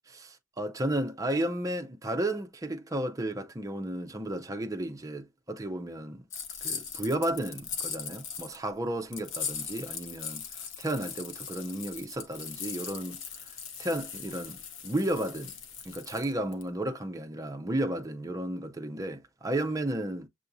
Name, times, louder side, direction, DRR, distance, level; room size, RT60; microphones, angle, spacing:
voice 1, 0.2-6.2 6.6-10.5 10.8-13.2 13.8-15.5 15.8-20.3, right 1 dB, 20° right, 0.6 m, -33 dB
sound 1, 6.3-8.6 9.1-16.6, left 6 dB, 80° left, 0.9 m, -39 dB
6.8 x 2.5 x 2.6 m
head